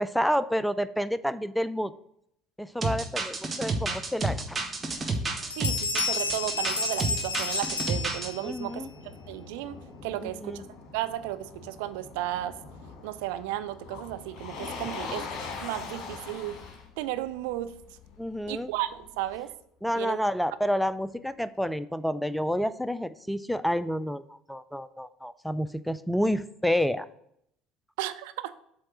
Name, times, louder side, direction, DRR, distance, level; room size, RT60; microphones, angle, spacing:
voice 1, 0.0-1.9 2.6-4.6 8.4-8.9 10.2-10.6 15.0-15.1 18.2-18.7 19.8-24.2 24.5-27.1, equal, ahead, 15 dB, 0.4 m, -29 dB
sound 1, 2.8-8.3, right 3 dB, 25° right, 1.1 m, -30 dB
Bell, 4.4-4.5 5.0-5.2 5.5-8.6, left 4 dB, 85° left, 0.4 m, -31 dB
Motor vehicle (road), 4.6-19.4, left 4 dB, 50° left, 1.3 m, -44 dB
voice 2, 5.6-8.9 9.3-9.8 10.0-10.6 10.9-12.6 13.0-15.2 15.6-16.6 17.0-17.7 18.5-19.5 19.9-20.2 28.0-28.5, right 14 dB, 65° right, 11 dB, 0.4 m, -34 dB
7.7 x 3.2 x 6.1 m, 0.74 s
figure-of-eight pair, 60°, 0 cm